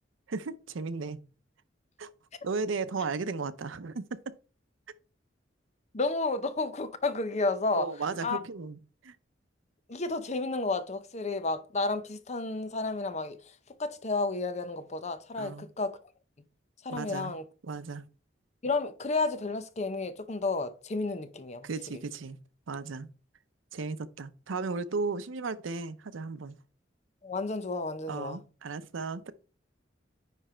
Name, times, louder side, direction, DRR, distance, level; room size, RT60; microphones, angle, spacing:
voice 1, 0.3-1.2 2.0-2.1 2.4-4.2 7.7-9.2 15.4-15.7 16.9-17.3 17.6-18.0 21.6-22.4 22.7-23.1 23.7-26.6 28.1-29.3, right 4 dB, 90° right, 0.6 m, -35 dB
voice 2, 5.9-7.9 8.2-8.4 9.9-13.4 13.8-16.0 16.8-17.4 18.6-21.7 27.2-28.4, left 3 dB, 35° left, 0.6 m, -31 dB
9.8 x 3.3 x 4.4 m
head